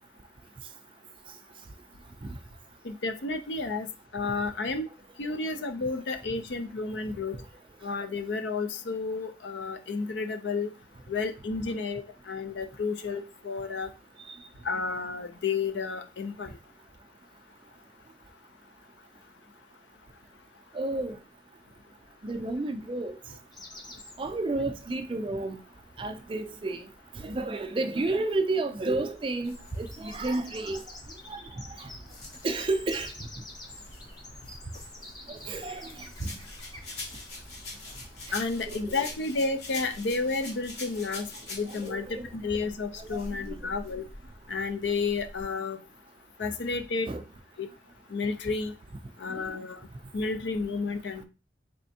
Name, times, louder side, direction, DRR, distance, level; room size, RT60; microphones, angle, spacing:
voice 1, 2.8-3.9 4.1-4.9 5.2-7.4 7.8-10.7 11.1-13.9 14.6-16.5 38.3-44.0 44.5-45.8 46.4-47.1 47.6-47.7 48.1-48.7 49.2-49.9 50.1-51.2, left 4 dB, 85° left, 0.6 m, -31 dB
voice 2, 20.7-21.2 22.2-23.2 24.2-25.6 26.0-26.8 27.2-30.8 31.3-31.4 31.8-31.9 32.4-33.1 35.3-36.4 38.3-38.4 38.7-39.0 41.7-42.3 43.0-43.2 43.5-43.6 47.1-47.2 49.3-49.4, right 2 dB, 30° right, 0.3 m, -31 dB
sound 1, 23.5-39.3, left 1 dB, 20° left, 0.8 m, -50 dB
sound 2, 29.4-45.4, right 1 dB, 40° left, 1.4 m, -47 dB
sound 3, 36.2-41.9, left 2 dB, 65° left, 1.3 m, -42 dB
4.2 x 3.3 x 2.7 m
head